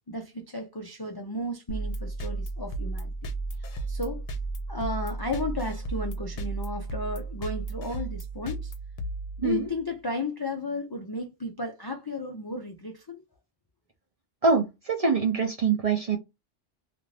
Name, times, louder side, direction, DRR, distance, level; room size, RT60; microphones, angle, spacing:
voice 1, 0.1-3.1 3.6-4.2 4.7-8.7 9.4-13.2, left 2 dB, 40° left, 0.3 m, -34 dB
sound 1, 1.7-9.9, right 3 dB, 70° left, 0.9 m, -34 dB
voice 2, 14.4-16.2, right 5 dB, 45° right, 0.5 m, -24 dB
2.5 x 2.5 x 3.1 m
omnidirectional pair, 1.1 m